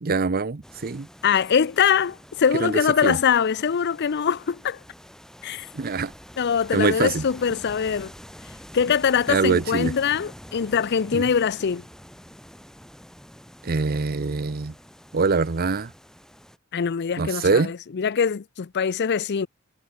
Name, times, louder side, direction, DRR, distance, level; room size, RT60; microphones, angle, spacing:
voice 1, 0.0-1.1 2.6-3.2 5.7-6.1 6.7-7.2 9.3-9.9 11.1-11.2 13.6-14.7 15.1-15.9 17.2-17.7, right 4 dB, 45° right, 0.7 m, -23 dB
sound 1, 0.6-16.6, equal, 5° left, 5.6 m, -46 dB
voice 2, 1.2-4.8 5.4-5.7 6.4-8.1 8.7-11.8 16.7-19.5, left 7 dB, 55° left, 0.5 m, -23 dB
head